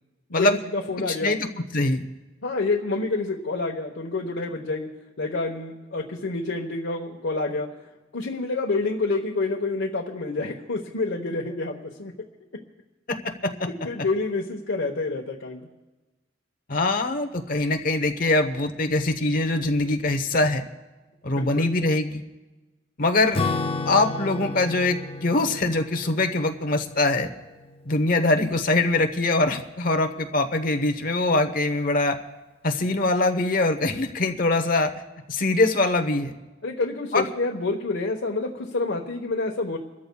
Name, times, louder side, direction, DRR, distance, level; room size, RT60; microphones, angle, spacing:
voice 1, 0.3-1.4 2.4-4.9 5.2-7.7 8.1-12.1 13.8-15.7 21.4-21.7 36.6-39.8, left 3 dB, 80° left, -2 dB, 1.1 m, -28 dB
voice 2, 1.1-1.5 1.7-2.0 13.1-13.5 16.7-20.6 21.2-22.2 23.0-23.4 23.9-27.3 27.8-32.2 32.6-34.9 35.3-36.3 37.1-37.3, left 2 dB, 45° left, 6 dB, 1.0 m, -23 dB
Acoustic guitar / Strum, 23.3-28.1, left 3 dB, 30° left, 0.4 m, -32 dB
29.5 x 13.5 x 2.3 m, 1.2 s
head